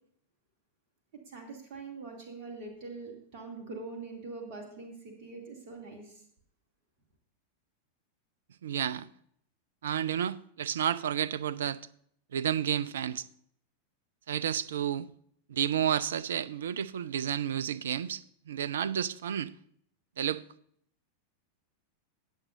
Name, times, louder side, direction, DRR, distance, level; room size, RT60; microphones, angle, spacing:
voice 1, 1.3-6.2, right 3 dB, 45° right, 2.6 m, -43 dB
voice 2, 8.6-9.1 9.8-11.8 12.3-13.3 14.3-15.1 15.5-19.5 20.2-20.4, right 9 dB, 60° right, 0.5 m, -31 dB
19.0 x 7.4 x 2.6 m
figure-of-eight pair, 90°, 0 cm